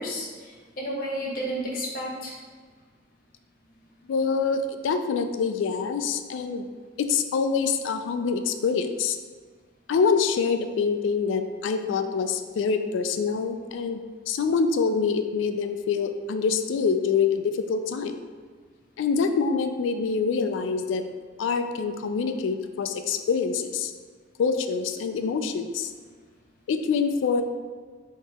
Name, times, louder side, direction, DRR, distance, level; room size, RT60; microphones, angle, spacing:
voice 1, 0.0-2.3, equal, 50° left, -3 dB, 0.9 m, -32 dB
voice 2, 4.1-6.7 7.0-9.2 9.9-14.0 14.3-18.1 19.0-21.0 21.4-23.9 24.4-25.9 26.7-27.4, left 5 dB, 80° left, 8 dB, 0.3 m, -25 dB
3.6 x 2.8 x 4.2 m, 1.5 s
head